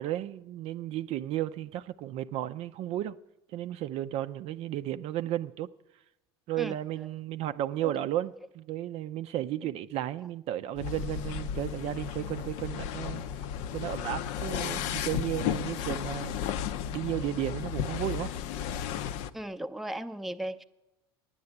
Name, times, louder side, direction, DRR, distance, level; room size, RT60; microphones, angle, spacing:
voice 1, 0.0-3.2 3.5-5.7 6.5-13.2 13.7-16.3 16.9-18.3, right 13 dB, 50° right, 0.4 m, -33 dB
voice 2, 6.6-7.1 7.8-7.9 19.3-20.6, right 1 dB, ahead, 0.5 m, -37 dB
sound 1, 10.8-19.3, left 9 dB, 65° left, 0.6 m, -34 dB
9.4 x 8.6 x 8.0 m
hypercardioid pair, 85°, 13 cm